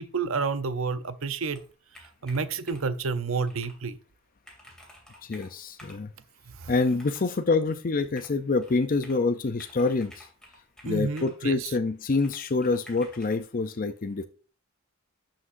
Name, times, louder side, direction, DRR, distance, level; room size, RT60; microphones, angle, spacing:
voice 1, 0.0-1.6 2.0-4.0 6.5-6.7 10.8-11.7, right 4 dB, 70° right, 0.7 m, -30 dB
Computer keyboard, 1.5-3.0 3.5-3.8 4.1-4.2 4.4-6.1 6.9-7.4 8.2-9.3 9.6-11.4 12.2-13.4, left 1 dB, 5° left, 2.7 m, -51 dB
voice 2, 5.2-6.1 6.7-10.3 10.8-14.2, left 3 dB, 40° left, 0.5 m, -26 dB
11.0 x 5.9 x 2.6 m
head